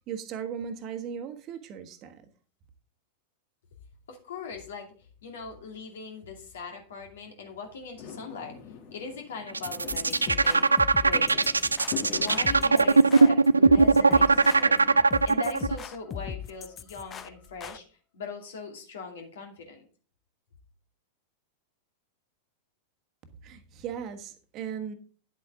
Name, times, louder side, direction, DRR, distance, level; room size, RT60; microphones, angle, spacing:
voice 1, 0.1-2.2 23.4-24.9, right 7 dB, 35° right, 7 dB, 1.4 m, -37 dB
voice 2, 4.1-11.3 12.1-19.9, left 4 dB, 60° left, 3 dB, 2.5 m, -40 dB
Fireworks, 8.0-15.1, left 7 dB, 45° left, 1.7 m, -43 dB
sound 1, 9.5-15.8, right 3 dB, 80° right, 0.3 m, -20 dB
sound 2, 9.9-17.8, left 8 dB, 25° left, 0.6 m, -39 dB
10.0 x 8.1 x 3.8 m, 0.40 s
figure-of-eight pair, 90°, 0 cm